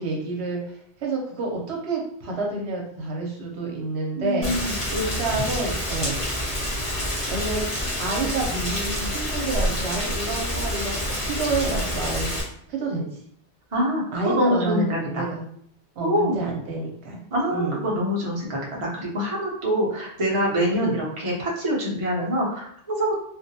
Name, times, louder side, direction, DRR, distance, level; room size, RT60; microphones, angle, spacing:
voice 1, 0.0-6.2 7.3-12.3 12.7-13.0 14.1-15.4 16.0-17.2 17.5-17.8 20.7-20.9, right 3 dB, 80° right, -1 dB, 0.9 m, -29 dB
voice 2, 4.2-4.8 13.7-15.3 16.0-16.4 17.3-23.1, equal, 35° right, -3 dB, 0.6 m, -25 dB
Rain, 4.4-12.4, equal, 25° left, 0.9 m, -27 dB
2.5 x 2.2 x 2.6 m, 0.66 s
omnidirectional pair, 1.1 m